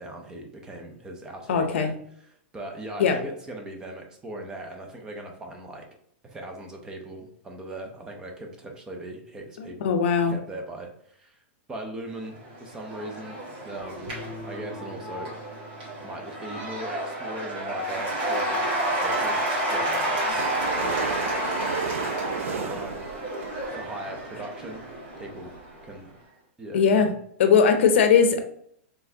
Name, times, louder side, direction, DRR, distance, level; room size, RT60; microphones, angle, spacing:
voice 1, 0.0-1.9 2.5-5.9 6.2-9.9 10.3-11.4 11.7-14.2 14.5-15.4 16.0-20.4 20.7-21.1 22.1-23.0 23.6-24.9 25.2-25.5 25.8-26.1 26.6-27.2, right 1 dB, 10° right, 2 dB, 0.5 m, -39 dB
voice 2, 1.5-2.0 3.0-3.2 9.6-10.3 26.7-27.1 27.4-28.4, left 6 dB, 65° left, 7 dB, 0.6 m, -20 dB
Cheering / Applause / Crowd, 12.4-25.8, right 1 dB, 50° right, 1.7 m, -30 dB
Bass guitar, 14.1-20.3, left 1 dB, 35° left, 0.9 m, -49 dB
sound 1, 20.4-24.2 24.9-25.0 25.2-25.3 25.5-25.6 25.9-26.0, right 6 dB, 85° right, 0.4 m, -33 dB
4.3 x 3.3 x 2.7 m, 0.67 s
supercardioid pair, 170°, 7 cm